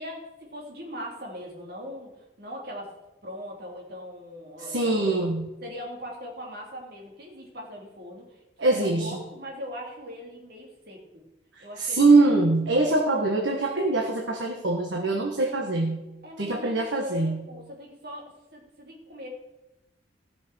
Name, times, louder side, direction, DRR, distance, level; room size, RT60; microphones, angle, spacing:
voice 1, 0.0-2.9 3.2-5.2 5.6-11.0 11.6-12.1 16.2-19.3, equal, 55° right, -1 dB, 3.2 m, -40 dB
voice 2, 4.6-5.5 8.6-9.2 11.8-16.0 16.4-17.4, right 3 dB, 75° right, 1 dB, 1.5 m, -23 dB
16.0 x 6.3 x 6.2 m, 0.98 s
head